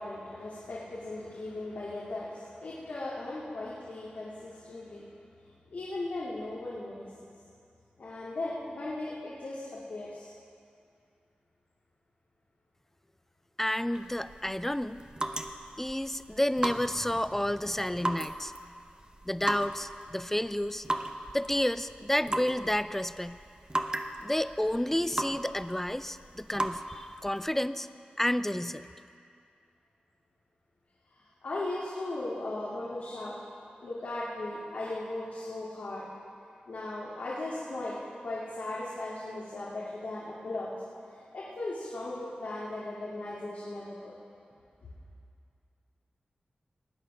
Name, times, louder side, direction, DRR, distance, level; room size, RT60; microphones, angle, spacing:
voice 1, 0.0-5.1 5.7-7.1 8.0-10.3 31.4-33.3 33.8-36.1 36.7-40.7 41.3-44.1, left 2 dB, 80° left, -7 dB, 2.2 m, -37 dB
voice 2, 13.6-15.0 15.8-18.5 19.3-20.9 21.3-23.4 24.2-27.9 28.2-28.9, left 1 dB, 10° left, 14 dB, 0.4 m, -30 dB
sound 1, 13.9-27.5, right 1 dB, 30° right, 0.8 m, -37 dB
19.0 x 8.6 x 5.5 m, 2.4 s
cardioid pair, 60°, 3 cm